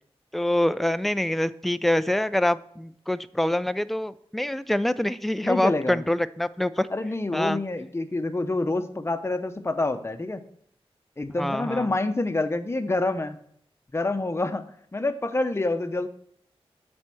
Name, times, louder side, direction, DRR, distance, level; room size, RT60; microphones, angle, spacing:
voice 1, 0.3-6.9 7.3-7.6 11.4-11.9, left 1 dB, ahead, 14 dB, 0.3 m, -25 dB
voice 2, 5.4-6.0 6.9-10.4 11.2-13.4 13.9-14.6 14.9-16.1, left 2 dB, 25° left, 8 dB, 0.8 m, -27 dB
8.0 x 4.3 x 6.1 m, 0.64 s
wide cardioid pair, 75°, 10 cm